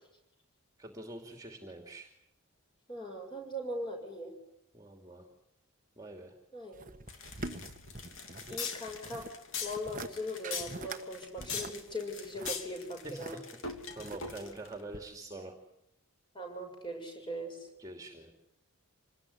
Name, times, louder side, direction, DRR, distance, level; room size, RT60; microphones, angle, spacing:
voice 1, 0.8-2.1 4.7-5.3 6.0-6.3 13.0-13.3 14.0-15.5 17.8-18.3, right 2 dB, 15° right, 3 dB, 2.7 m, -45 dB
voice 2, 2.9-4.3 6.5-6.9 8.5-9.2 9.6-13.4 16.3-17.7, equal, 20° left, 3 dB, 7.0 m, -40 dB
sound 1, 6.7-8.6 8.9-9.4 9.7-10.1 10.4-11.0 11.4-13.4 13.9-14.5 14.9-15.0, right 2 dB, 35° right, 1.2 m, -44 dB
sound 2, 7.1-14.7, left 5 dB, 60° left, 3.0 m, -41 dB
26.5 x 20.0 x 9.9 m, 0.79 s
head